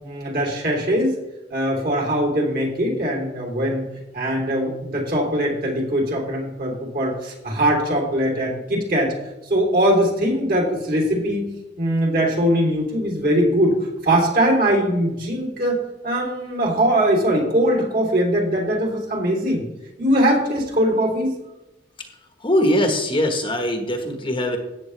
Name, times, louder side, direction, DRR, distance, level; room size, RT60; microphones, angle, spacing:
voice 1, 0.0-1.1 1.5-3.9 4.1-9.1 9.5-11.4 11.8-13.8 14.0-15.8 16.0-19.6 20.0-21.3, equal, 50° right, -1 dB, 3.4 m, -21 dB
voice 2, 22.4-24.6, left 1 dB, 30° left, 4 dB, 1.3 m, -21 dB
14.0 x 9.3 x 3.3 m, 0.97 s
head